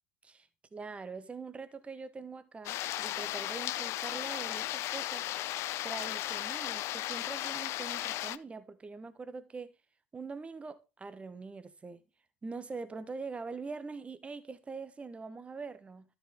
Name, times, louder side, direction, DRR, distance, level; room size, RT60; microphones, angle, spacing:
voice 1, 0.2-5.3 5.8-9.7 10.1-12.0 12.4-16.0, right 4 dB, 20° right, 1.2 m, -43 dB
sound 1, 2.6-8.4, left 15 dB, 50° left, 0.5 m, -35 dB
12.5 x 6.9 x 3.6 m
figure-of-eight pair, 70°, 6 cm